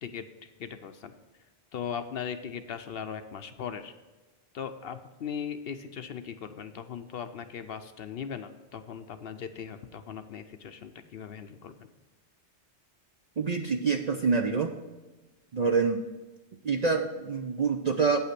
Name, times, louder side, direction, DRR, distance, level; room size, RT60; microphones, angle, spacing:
voice 1, 0.0-1.1 1.7-3.9 4.5-11.9, left 7 dB, 65° left, 9 dB, 0.8 m, -39 dB
voice 2, 13.4-14.7 15.5-16.0 16.6-18.2, right 5 dB, 50° right, 5 dB, 0.5 m, -26 dB
8.9 x 5.6 x 5.9 m, 1.2 s
omnidirectional pair, 1.2 m